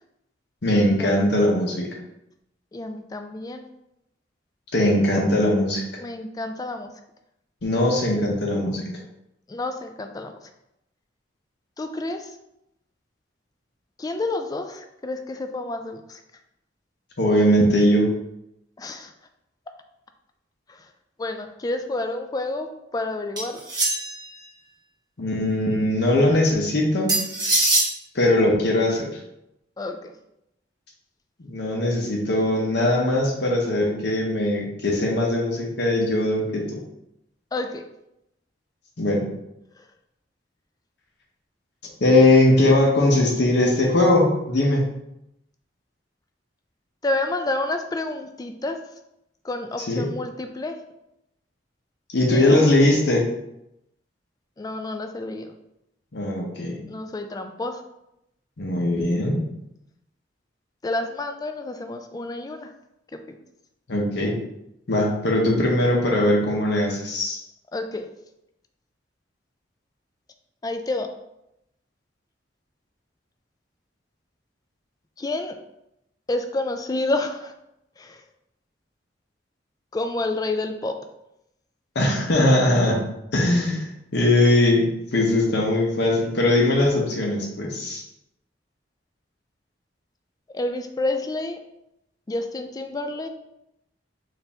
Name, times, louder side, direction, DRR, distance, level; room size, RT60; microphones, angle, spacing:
voice 1, 0.6-1.9 4.7-5.8 7.6-8.9 17.2-18.1 25.2-27.2 28.1-29.2 31.4-36.7 39.0-39.3 42.0-44.8 49.9-50.1 52.1-53.3 56.1-56.8 58.6-59.4 63.9-64.3 64.9-67.4 81.9-83.1 83.3-88.0, left 1 dB, 65° left, -1 dB, 0.8 m, -20 dB
voice 2, 2.7-3.7 6.0-6.9 9.5-10.3 11.8-12.3 14.0-16.2 18.8-19.1 20.7-20.9 21.2-22.7 22.9-23.6 29.8-30.1 37.5-37.8 39.8-39.9 47.0-48.8 49.4-50.8 52.3-52.6 54.6-55.5 56.9-57.8 60.8-62.7 63.1-63.4 67.7-68.1 70.6-71.1 75.2-75.6 76.3-77.5 78.0-78.2 79.9-81.0 90.5-91.6 92.3-93.3, left 2 dB, 20° left, 6 dB, 0.3 m, -29 dB
sound 1, 23.4-24.3 27.1-27.9, right 2 dB, 25° right, 1.1 m, -22 dB
4.2 x 2.6 x 3.5 m, 0.83 s
head